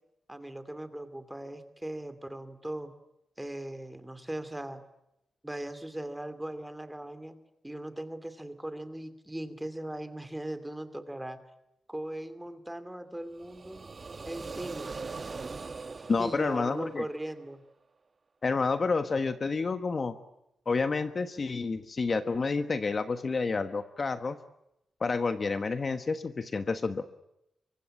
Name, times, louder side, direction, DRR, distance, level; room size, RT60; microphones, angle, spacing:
voice 1, 0.3-2.9 3.4-4.8 5.4-7.4 7.6-11.4 11.9-13.8 14.3-14.9 16.0-17.6, right 1 dB, 5° right, 10 dB, 2.6 m, -39 dB
sound 1, 13.3-17.4, right 4 dB, 35° right, 1.2 m, -41 dB
voice 2, 16.1-17.0 18.4-20.1 20.7-24.4 25.0-27.0, left 4 dB, 35° left, 9 dB, 1.3 m, -29 dB
26.0 x 24.0 x 8.8 m, 0.85 s
wide cardioid pair, 130°, 0 cm